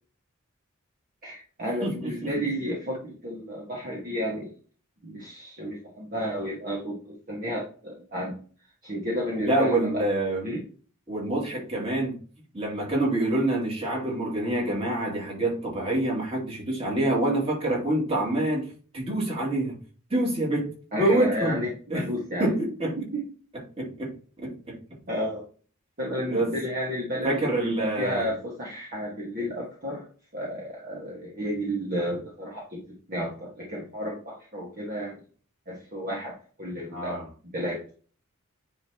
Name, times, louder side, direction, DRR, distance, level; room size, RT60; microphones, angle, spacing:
voice 1, 1.2-4.5 5.0-8.3 8.8-10.0 10.4-10.6 20.9-22.5 23.1-23.2 25.1-25.4 26.0-30.0 30.3-35.1 35.7-37.2 37.5-37.8, equal, 45° right, -4 dB, 1.8 m, -32 dB
voice 2, 1.8-2.3 9.4-10.4 11.1-12.2 12.5-18.7 18.9-19.8 20.1-20.7 21.0-21.6 21.9-22.1 22.4-23.0 23.8-24.1 24.4-24.8 26.3-26.6 27.2-28.3 36.9-37.3, right 1 dB, 30° right, -3 dB, 2.8 m, -26 dB
9.6 x 3.7 x 3.0 m, 0.40 s
head